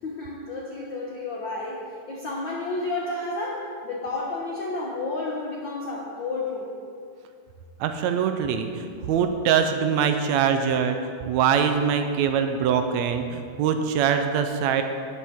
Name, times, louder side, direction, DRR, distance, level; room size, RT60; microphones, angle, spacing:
voice 1, 0.0-6.7, left 2 dB, 85° left, -3 dB, 1.0 m, -31 dB
voice 2, 7.8-11.0 11.3-14.8, right 7 dB, 80° right, 6 dB, 1.6 m, -23 dB
12.0 x 10.0 x 3.6 m, 2.3 s
omnidirectional pair, 3.8 m